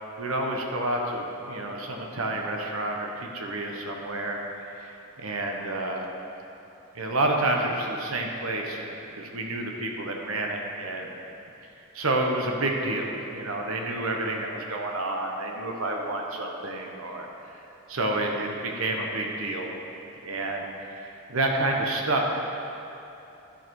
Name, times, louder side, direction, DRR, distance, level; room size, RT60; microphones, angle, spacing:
voice 1, 0.2-4.4 4.8-6.0 6.9-11.1 11.9-17.3 17.9-19.7 20.2-22.5, right 2 dB, 80° right, 1 dB, 0.9 m, -29 dB
11.0 x 6.5 x 4.6 m, 2.9 s
head